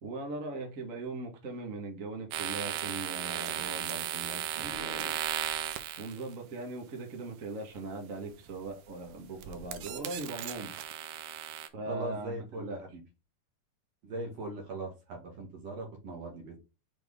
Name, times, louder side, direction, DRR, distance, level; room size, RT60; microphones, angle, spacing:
voice 1, 0.0-5.2 6.0-10.8 11.7-12.8, right 2 dB, 40° right, 1.3 m, -40 dB
sound 1, 2.3-6.3 8.3-8.7 9.1-11.7, right 11 dB, 85° right, 2.3 m, -36 dB
voice 2, 11.9-13.0 14.0-16.6, right 2 dB, 55° right, 2.9 m, -40 dB
6.1 x 4.4 x 3.6 m
omnidirectional pair, 3.7 m